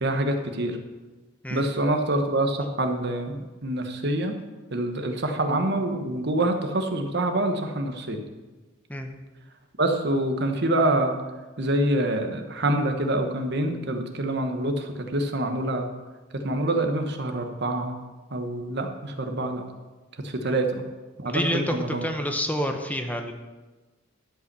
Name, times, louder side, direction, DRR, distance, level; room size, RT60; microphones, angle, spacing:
voice 1, 0.0-0.8 1.5-4.3 4.7-8.2 9.8-11.2 11.6-15.9 16.4-18.0 18.3-19.6 20.2-20.8 21.2-22.0, right 1 dB, 55° right, 5 dB, 1.2 m, -26 dB
voice 2, 21.2-23.3, equal, 10° left, 5 dB, 0.8 m, -28 dB
12.0 x 5.3 x 6.8 m, 1.2 s
head